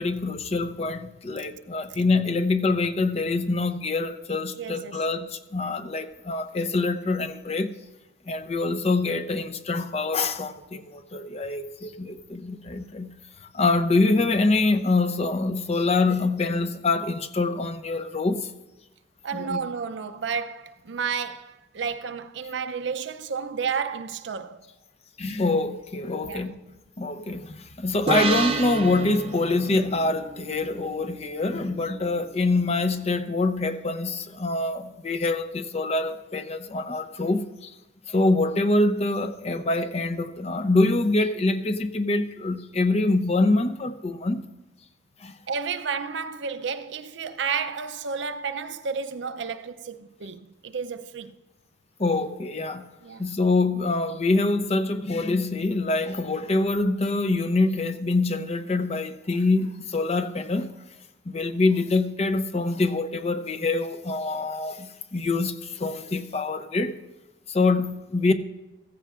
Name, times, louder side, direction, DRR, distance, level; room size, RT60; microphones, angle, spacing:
voice 1, 0.0-7.7 8.3-13.1 13.4-18.5 19.3-19.6 25.2-26.5 27.0-37.7 38.1-44.4 45.2-45.4 52.0-52.9 53.2-60.7 61.3-66.9 67.5-68.3, left 2 dB, 35° left, 0.6 m, -25 dB
voice 2, 4.6-5.0 19.2-24.7 26.2-26.5 45.5-51.3 53.0-53.3, right 6 dB, 75° right, 0.6 m, -31 dB
sound 1, 28.1-31.5, right 3 dB, 30° right, 0.6 m, -30 dB
15.0 x 15.0 x 2.5 m
head